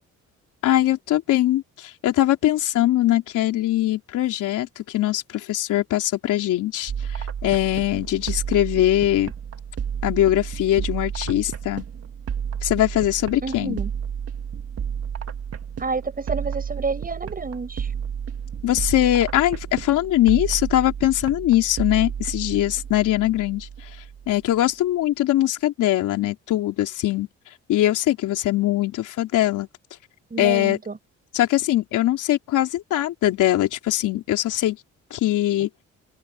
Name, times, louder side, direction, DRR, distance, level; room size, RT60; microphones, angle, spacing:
voice 1, 0.6-9.3 10.0-11.8 12.6-13.8 18.6-23.7 24.3-27.3 27.7-29.7 30.4-30.8 31.3-34.8 35.1-35.7, left 14 dB, 85° left, 3.6 m, -21 dB
sound 1, 6.9-24.5, right 7 dB, 50° right, 2.0 m, -32 dB
voice 2, 13.4-13.9 15.8-17.9 30.3-31.0, right 4 dB, 30° right, 7.0 m, -29 dB
open air
cardioid pair, 90°, 30 cm